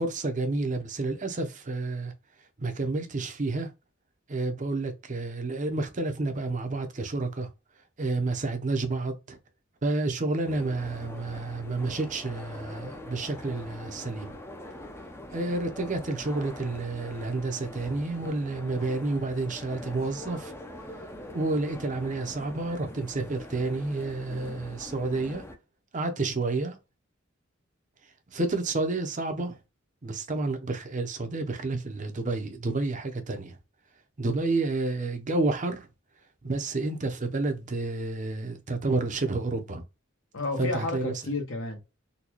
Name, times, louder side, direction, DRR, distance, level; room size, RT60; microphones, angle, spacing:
voice 1, 0.0-2.1 2.6-3.7 4.3-7.5 8.0-9.4 9.8-14.3 15.3-20.5 21.3-25.4 25.9-26.8 28.3-29.6 30.0-33.6 34.2-35.9 36.4-39.8 40.6-41.1, right 2 dB, 40° right, 0.6 m, -30 dB
sound 1, 10.5-25.6, left 1 dB, 10° left, 0.5 m, -43 dB
voice 2, 40.3-41.9, left 2 dB, 70° left, 1.1 m, -31 dB
3.9 x 2.2 x 3.0 m
head